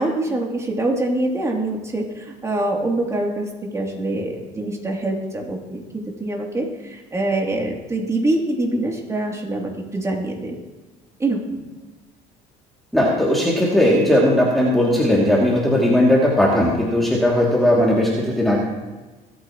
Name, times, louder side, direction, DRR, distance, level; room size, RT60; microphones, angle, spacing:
voice 1, 0.0-10.5 11.2-11.6, right 2 dB, 20° right, -1 dB, 2.9 m, -24 dB
voice 2, 12.9-18.6, left 1 dB, ahead, -5 dB, 2.7 m, -17 dB
26.0 x 8.7 x 3.1 m, 1.2 s
cardioid pair, 110°, 15 cm